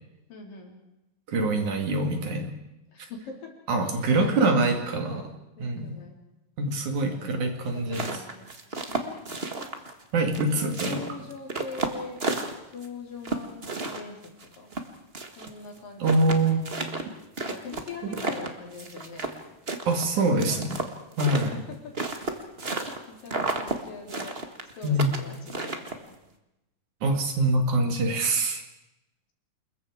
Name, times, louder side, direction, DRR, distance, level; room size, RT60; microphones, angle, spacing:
voice 1, 0.3-0.8 2.9-3.5 3.8-6.2 7.1-8.5 8.9-9.7 10.5-12.3 12.7-14.7 15.4-17.0 17.4-19.6 20.0-20.6 21.5-21.9 23.1-24.4 24.7-26.2, left 4 dB, 80° left, 1 dB, 5.5 m, -42 dB
voice 2, 1.3-2.5 3.7-5.2 5.6-5.9 6.6-8.2 10.1-11.0 16.0-16.6 18.0-18.2 19.9-20.8 21.2-21.6 24.8-25.2 27.0-28.6, right 2 dB, 60° right, 4 dB, 3.7 m, -24 dB
sound 1, 7.7-10.0 10.3-12.9 13.2-15.5 15.8-15.9 16.0-19.4 19.7-23.0 23.3-23.8 24.1-26.1, right 3 dB, 30° right, 1.0 m, -32 dB
28.5 x 21.5 x 4.9 m, 0.94 s
omnidirectional pair, 3.9 m